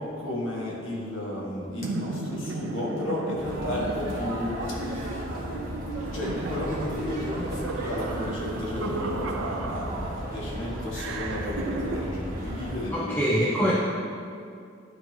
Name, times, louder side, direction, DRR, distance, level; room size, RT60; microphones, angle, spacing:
voice 1, 0.0-13.7, left 1 dB, 80° left, -5 dB, 1.7 m, -33 dB
sound 1, 1.8-10.4 10.9-12.0, right 3 dB, 90° right, 0.5 m, -35 dB
sound 2, 3.4-12.9, equal, 45° right, 1.5 m, -35 dB
voice 2, 12.9-13.7, equal, 10° left, -6 dB, 0.5 m, -24 dB
11.5 x 4.0 x 2.9 m, 2.4 s
head